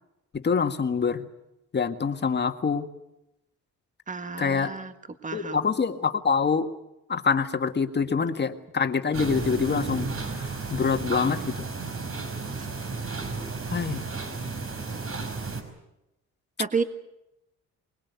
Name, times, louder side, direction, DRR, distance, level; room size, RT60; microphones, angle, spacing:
voice 1, 0.3-1.3 1.7-2.9 4.4-4.7 5.3-6.7 7.1-11.6 13.7-14.0, left 5 dB, 35° left, 7 dB, 1.9 m, -26 dB
voice 2, 4.1-4.9 5.2-5.6 12.6-12.7 16.6-16.8, right 5 dB, 25° right, 9 dB, 1.7 m, -30 dB
sound 1, 9.1-15.6, right 4 dB, 50° right, 5.0 m, -33 dB
24.5 x 21.0 x 8.3 m, 0.91 s
cardioid pair, 90°, 30 cm